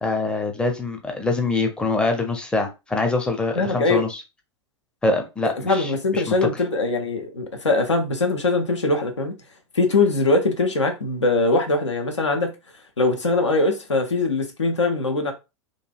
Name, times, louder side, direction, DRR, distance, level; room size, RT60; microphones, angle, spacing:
voice 1, 0.0-4.2 5.0-6.4, left 3 dB, 5° left, 0.6 m, -24 dB
voice 2, 3.6-4.0 5.6-9.4 9.7-12.5 13.0-15.3, left 3 dB, 80° left, 0.7 m, -21 dB
3.1 x 2.5 x 2.3 m
figure-of-eight pair, 90°, 15 cm